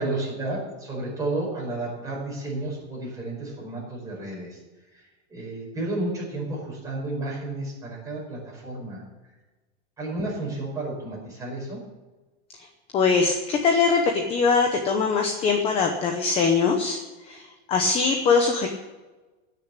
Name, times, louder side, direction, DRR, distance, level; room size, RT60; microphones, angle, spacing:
voice 1, 0.0-4.6 4.9-5.0 5.3-9.0 10.0-11.8, right 2 dB, 10° right, -4 dB, 5.0 m, -32 dB
voice 2, 12.9-17.0 17.2-18.7, left 5 dB, 20° left, 4 dB, 0.9 m, -22 dB
16.5 x 6.8 x 9.9 m, 1.2 s
supercardioid pair, 180°, 33 cm